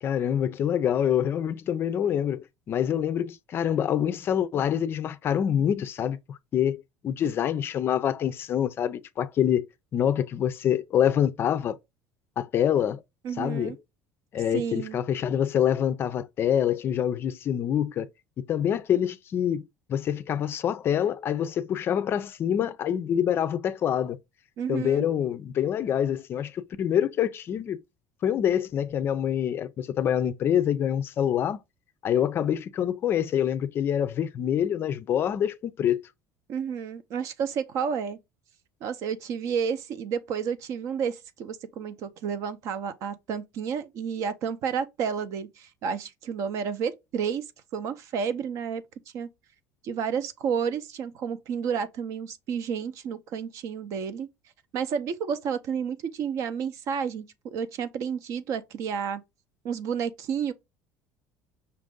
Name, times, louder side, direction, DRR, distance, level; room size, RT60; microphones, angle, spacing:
voice 1, 0.0-6.8 7.0-9.7 9.9-11.8 12.4-13.0 13.4-13.8 14.3-18.1 18.5-24.2 24.7-27.8 28.2-31.6 32.0-36.0, left 9 dB, 35° left, 0.4 m, -26 dB
voice 2, 13.2-13.8 14.5-15.0 24.6-25.1 36.5-38.2 38.8-47.4 47.7-48.8 49.1-49.3 49.8-54.3 54.7-59.2 59.6-60.5, right 7 dB, 50° right, 0.6 m, -31 dB
5.7 x 2.5 x 3.7 m
cardioid pair, 140°, 7 cm